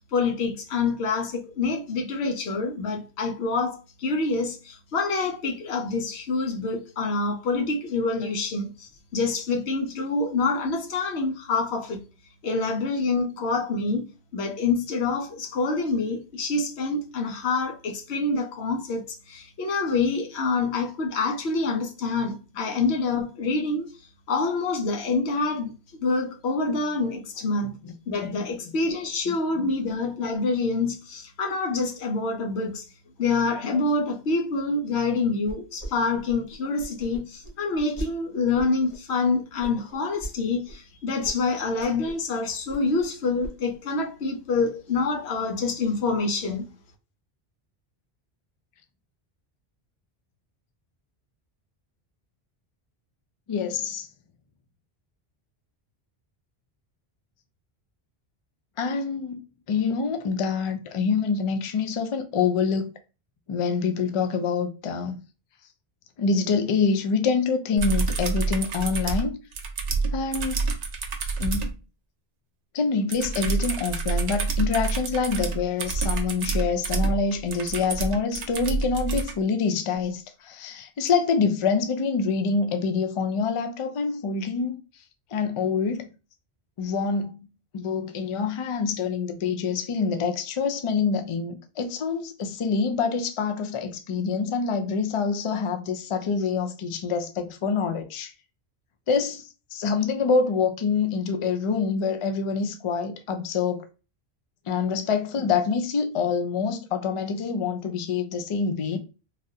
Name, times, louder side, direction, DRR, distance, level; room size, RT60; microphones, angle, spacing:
voice 1, 0.0-12.0 12.4-14.1 14.3-23.9 24.3-27.7 28.1-32.8 33.2-46.7, left 3 dB, 90° left, 1.0 m, -26 dB
voice 2, 27.6-27.9 28.2-28.5 29.3-29.7 53.5-54.1 58.8-59.4 59.7-62.9 63.5-65.2 66.2-69.4 70.1-70.6 71.4-71.7 72.7-84.8 85.3-86.1 86.8-87.5 87.7-98.3 99.1-103.8 104.7-109.0, left 5 dB, 55° left, 0.3 m, -26 dB
sound 1, 35.5-35.9 36.1-38.1 38.6-39.0 39.6-40.3 40.7-40.8 41.2-41.3 41.6-42.3 42.5-43.1 43.4-43.8, right 2 dB, 30° left, 1.5 m, -38 dB
sound 2, 67.8-71.7 73.1-79.3 81.1-81.2, right 4 dB, 55° right, 0.5 m, -28 dB
3.2 x 2.4 x 2.7 m
omnidirectional pair, 1.1 m